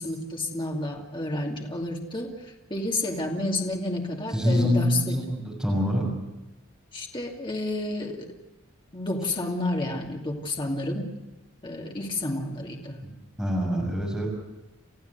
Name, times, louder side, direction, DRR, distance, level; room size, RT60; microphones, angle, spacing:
voice 1, 0.0-5.2 6.9-8.3 8.9-11.1 11.6-13.0, left 2 dB, 25° left, 0 dB, 2.5 m, -30 dB
voice 2, 4.3-6.0 13.4-14.3, equal, 5° right, -2 dB, 6.5 m, -25 dB
29.5 x 15.0 x 8.0 m, 1.1 s
head